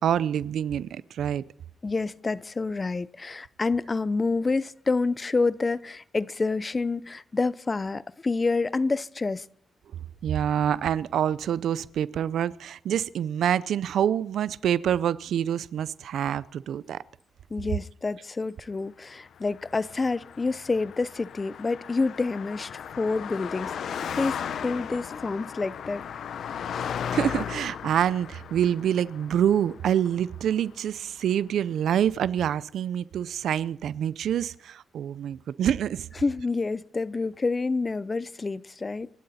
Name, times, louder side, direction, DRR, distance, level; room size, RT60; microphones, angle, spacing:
voice 1, 0.0-1.4 10.2-17.0 27.1-36.1, right 9 dB, 75° right, 0.5 m, -26 dB
voice 2, 1.8-9.5 17.5-22.7 23.0-26.1 26.7-26.8 36.2-39.1, left 3 dB, 30° left, 0.6 m, -28 dB
Car passing by, 19.4-30.9, left 8 dB, 65° left, 0.8 m, -36 dB
27.0 x 12.0 x 4.2 m
cardioid pair, 95°, 0 cm